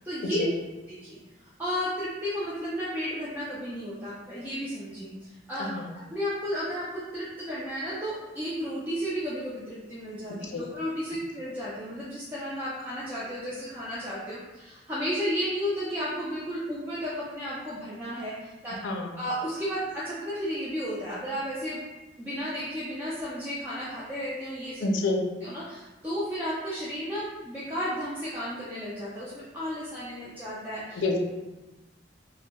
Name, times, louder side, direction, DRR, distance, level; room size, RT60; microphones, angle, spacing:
voice 1, 0.0-0.4 0.9-1.2 1.6-5.7 6.1-18.7 19.2-21.8 22.2-24.9 25.4-31.0, equal, 10° right, -9 dB, 0.3 m, -33 dB
voice 2, 18.8-19.1 24.8-25.2 31.0-31.3, left 2 dB, 85° left, 2 dB, 0.4 m, -27 dB
2.1 x 2.0 x 2.8 m, 1.1 s
head